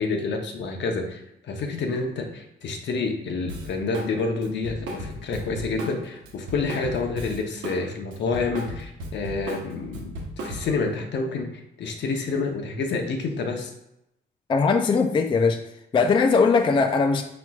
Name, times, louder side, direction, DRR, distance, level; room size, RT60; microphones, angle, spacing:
voice 1, 0.0-13.7, left 4 dB, 65° left, 3 dB, 0.8 m, -28 dB
Drum kit, 3.5-4.1 4.4-7.8 8.1-10.8, right 1 dB, 90° right, 1.0 m, -35 dB
voice 2, 14.5-15.6 15.9-17.2, left 4 dB, 25° left, 7 dB, 0.3 m, -20 dB
4.3 x 4.3 x 2.4 m, 0.83 s
cardioid pair, 90°, 20 cm